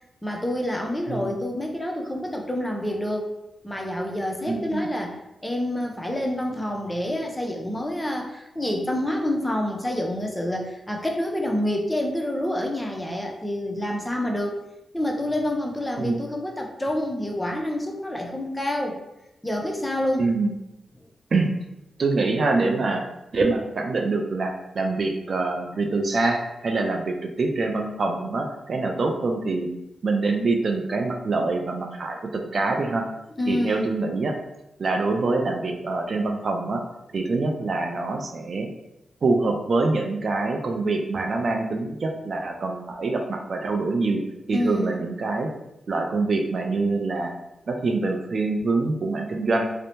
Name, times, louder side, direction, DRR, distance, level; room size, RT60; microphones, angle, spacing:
voice 1, 0.2-3.3 3.6-14.6 14.9-19.0 19.4-20.3 33.4-33.9 44.5-45.1, left 1 dB, 15° left, 1 dB, 0.5 m, -27 dB
voice 2, 4.5-4.8 16.0-16.2 20.2-20.6 21.3-21.5 22.0-23.0 23.3-29.7 30.0-33.0 33.5-34.3 34.8-36.8 37.1-38.7 39.2-44.2 44.5-45.5 45.9-47.3 47.7-49.7, right 3 dB, 60° right, 2 dB, 0.3 m, -25 dB
2.7 x 2.0 x 2.8 m, 0.91 s
supercardioid pair, 40°, 0 cm